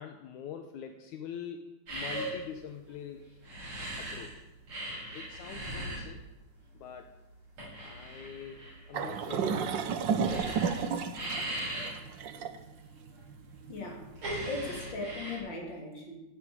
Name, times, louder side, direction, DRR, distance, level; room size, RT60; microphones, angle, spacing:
voice 1, 0.0-1.6 1.9-3.2 4.0-4.3 5.1-6.2 6.7-7.1 7.8-9.9 10.4-10.5, left 8 dB, 75° left, 6 dB, 2.4 m, -44 dB
sound 1, 1.9-4.3 4.6-15.4, right 1 dB, 60° right, 9.4 m, -39 dB
sound 2, 8.9-14.1, right 6 dB, 75° right, 1.0 m, -32 dB
voice 2, 13.7-14.1 14.4-16.1, left 2 dB, 35° left, 0 dB, 4.1 m, -38 dB
17.0 x 9.1 x 9.1 m, 1.0 s
omnidirectional pair, 3.5 m